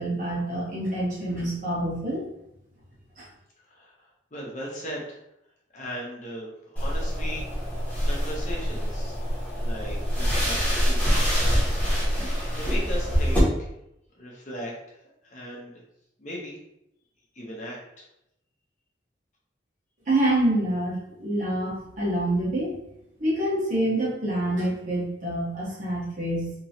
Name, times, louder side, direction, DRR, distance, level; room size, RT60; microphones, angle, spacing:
voice 1, 0.0-2.2 3.2-3.3 20.1-22.7 23.2-26.5, right 1 dB, 45° right, -6 dB, 1.2 m, -26 dB
voice 2, 3.7-5.2 5.7-9.2 9.5-11.0 12.5-13.7 14.1-14.7 15.2-15.7 16.2-16.5 17.3-18.0, equal, 40° left, -3 dB, 0.8 m, -38 dB
sound 1, 6.8-13.4, equal, 10° left, 1.1 m, -25 dB
3.0 x 2.9 x 2.8 m, 0.81 s
head